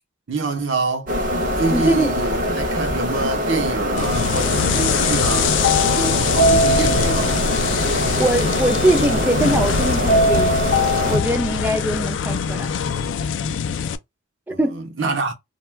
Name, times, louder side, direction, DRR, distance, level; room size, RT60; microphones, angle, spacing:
voice 1, 0.3-1.1 1.6-5.5 5.9-7.4 14.5-15.3, right 3 dB, 75° right, 0.8 m, -26 dB
sound 1, 1.1-11.2, equal, 45° right, 0.7 m, -24 dB
voice 2, 1.7-2.1 8.2-10.7 11.1-12.7 14.5-14.8, right 1 dB, 10° right, 0.3 m, -22 dB
sound 2, 4.0-14.0, left 7 dB, 70° left, 0.3 m, -23 dB
sound 3, 5.6-7.5 10.1-11.5, equal, 40° left, 0.7 m, -21 dB
2.2 x 2.2 x 3.2 m
head